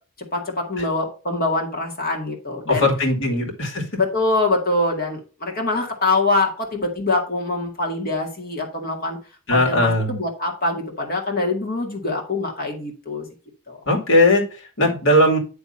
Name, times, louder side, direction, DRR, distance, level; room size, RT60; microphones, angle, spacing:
voice 1, 0.3-2.9 4.0-9.2 9.5-13.3 13.7-13.8, left 2 dB, 40° left, 1 dB, 1.9 m, -24 dB
voice 2, 2.7-3.8 9.5-10.2 13.9-15.4, left 1 dB, 60° left, 0 dB, 2.3 m, -18 dB
10.0 x 3.5 x 5.4 m, 0.35 s
head